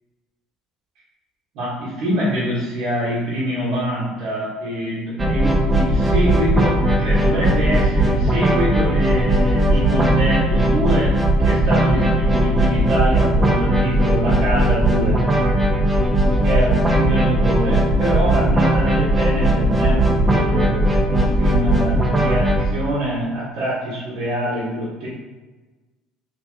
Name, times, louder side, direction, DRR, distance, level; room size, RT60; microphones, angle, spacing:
voice 1, 1.5-15.2 16.4-25.1, equal, 75° right, -9 dB, 1.3 m, -25 dB
sound 1, 5.2-22.7, right 1 dB, 15° right, 0.8 m, -18 dB
3.5 x 2.9 x 3.4 m, 1.2 s
supercardioid pair, 80°, 0 cm